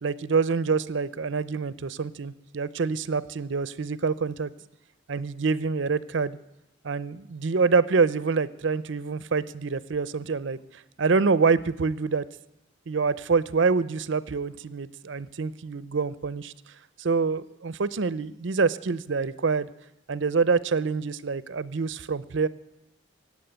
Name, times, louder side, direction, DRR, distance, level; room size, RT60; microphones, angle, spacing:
voice 1, 0.0-4.5 5.1-6.4 6.8-10.6 11.0-12.2 12.9-16.5 17.0-19.7 20.1-22.5, right 4 dB, 70° right, 17 dB, 0.6 m, -26 dB
16.5 x 8.6 x 9.0 m, 0.93 s
head